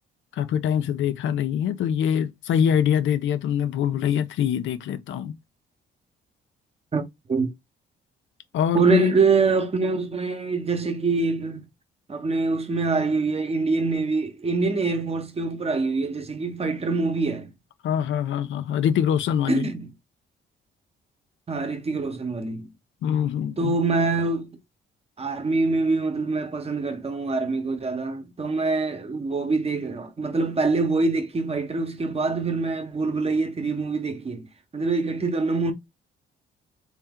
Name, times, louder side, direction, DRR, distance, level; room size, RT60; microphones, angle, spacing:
voice 1, 0.3-5.4 8.5-9.2 17.8-19.7 23.0-23.7, left 9 dB, 75° left, 0.6 m, -24 dB
voice 2, 8.7-11.6 12.1-17.5 19.5-19.9 21.5-22.7 23.6-24.5 25.2-34.5 34.7-35.7, right 3 dB, 30° right, 0.9 m, -25 dB
3.3 x 2.8 x 3.6 m
cardioid pair, 90°, 20 cm